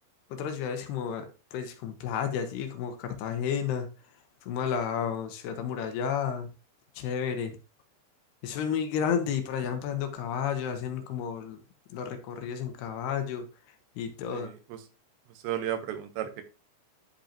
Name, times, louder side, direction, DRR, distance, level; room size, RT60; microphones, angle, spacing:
voice 1, 0.3-3.9 4.4-6.5 6.9-7.6 8.4-11.6 11.9-13.5 14.0-14.5, left 7 dB, 80° left, 7 dB, 2.8 m, -32 dB
voice 2, 14.3-14.8 15.4-16.4, right 11 dB, 90° right, 9 dB, 3.1 m, -34 dB
11.5 x 5.3 x 2.8 m, 0.31 s
omnidirectional pair, 5.0 m